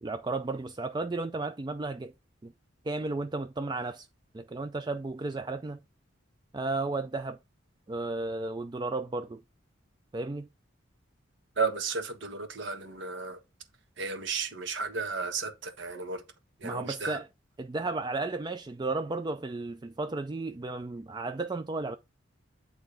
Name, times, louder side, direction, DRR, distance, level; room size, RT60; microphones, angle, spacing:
voice 1, 0.0-2.1 2.4-2.5 2.8-4.1 4.3-5.8 6.5-7.4 7.9-9.4 10.1-10.5 16.6-17.2 17.6-22.0, right 3 dB, 20° right, 0.3 m, -33 dB
voice 2, 11.5-13.4 14.0-16.2 16.6-17.2, right 4 dB, 65° right, 1.4 m, -33 dB
8.9 x 3.4 x 4.9 m
head